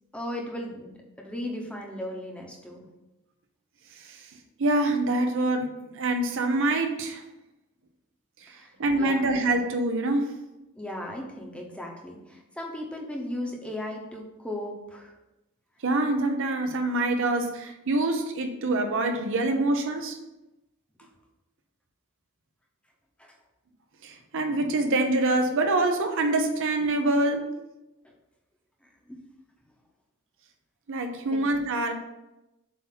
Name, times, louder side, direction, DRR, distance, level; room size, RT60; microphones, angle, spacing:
voice 1, 0.1-2.8 8.5-9.3 10.8-15.1 23.2-23.4 28.0-28.1 28.8-29.2 31.3-31.4, left 1 dB, 5° left, -1 dB, 0.9 m, -37 dB
voice 2, 4.6-7.2 8.4-8.5 8.8-10.3 15.8-20.2 24.0-27.5 30.9-31.9, right 2 dB, 60° right, 5 dB, 0.7 m, -25 dB
7.4 x 2.8 x 5.8 m, 0.97 s
head